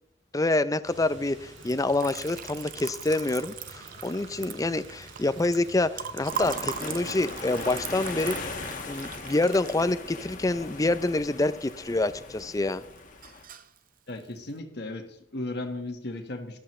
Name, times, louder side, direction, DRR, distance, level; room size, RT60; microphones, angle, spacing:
voice 1, 0.3-8.4 8.9-12.8, left 2 dB, 20° left, 13 dB, 0.5 m, -27 dB
sound 1, 0.8-8.6, right 1 dB, 90° right, 4.6 m, -48 dB
Liquid, 1.5-11.7 12.1-12.7 13.0-13.8, right 8 dB, 50° right, 0.7 m, -39 dB
sound 2, 6.3-13.4, left 3 dB, 45° left, 1.5 m, -39 dB
voice 2, 14.1-16.6, left 2 dB, 65° left, 4 dB, 1.5 m, -36 dB
13.5 x 12.5 x 3.2 m, 0.73 s
head